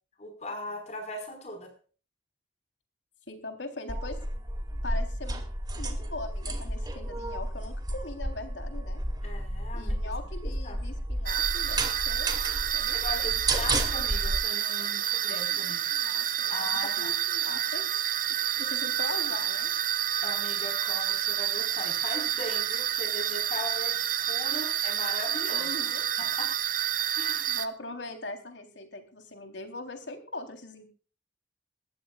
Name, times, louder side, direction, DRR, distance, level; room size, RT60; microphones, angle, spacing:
voice 1, 0.2-1.7 9.2-10.0 10.4-10.8 12.9-15.8 16.5-17.1 20.2-26.5 27.1-27.5, left 2 dB, 40° left, 4 dB, 5.2 m, -39 dB
voice 2, 3.3-4.2 4.8-5.4 5.8-9.0 9.7-12.4 12.7-13.7 14.8-17.9 18.6-19.7 25.5-26.1 27.5-30.9, left 2 dB, 90° left, 5 dB, 3.8 m, -41 dB
sound 1, 3.9-14.4, right 1 dB, 25° right, 2.4 m, -32 dB
sound 2, 11.3-27.7, right 11 dB, 50° right, 1.2 m, -29 dB
22.0 x 15.0 x 2.5 m, 0.38 s
head